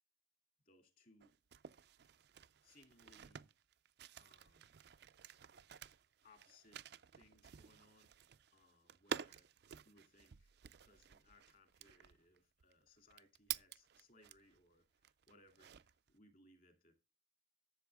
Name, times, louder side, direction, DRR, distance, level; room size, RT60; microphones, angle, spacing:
voice 1, 0.7-1.4 2.6-3.5 4.1-4.8 6.2-6.8 7.1-8.1 8.5-9.5 9.8-10.5 10.8-16.9, left 2 dB, 45° left, 2.5 m, -68 dB
sound 1, 1.2-14.6 15.0-16.1, right 8 dB, 55° right, 0.4 m, -51 dB
12.0 x 7.4 x 3.5 m
head